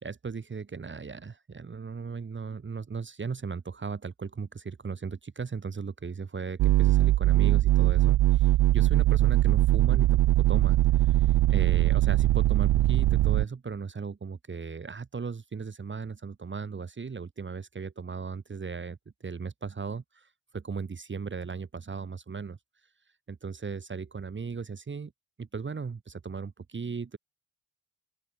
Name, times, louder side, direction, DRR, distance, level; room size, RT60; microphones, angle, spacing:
voice 1, 0.0-22.6 23.3-25.1 25.4-27.2, right 5 dB, 30° right, 1.7 m, -37 dB
sound 1, 6.6-13.5, right 15 dB, 80° right, 0.8 m, -21 dB
open air
cardioid pair, 110°, 39 cm